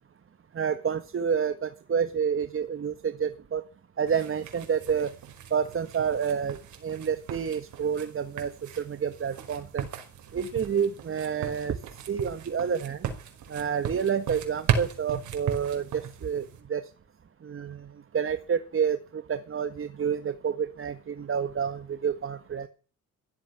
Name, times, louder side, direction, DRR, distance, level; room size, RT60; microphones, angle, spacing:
voice 1, 0.5-3.6 4.0-5.1 5.5-6.6 6.8-8.5 8.8-9.9 10.3-11.8 12.1-13.1 13.5-16.4 16.7-16.8 17.4-17.8 18.1-22.7, right 7 dB, 45° right, 10 dB, 1.6 m, -29 dB
sound 1, 4.1-16.6, right 8 dB, 75° right, 5.1 m, -36 dB
16.5 x 12.5 x 6.0 m, 0.38 s
cardioid pair, 90°, 30 cm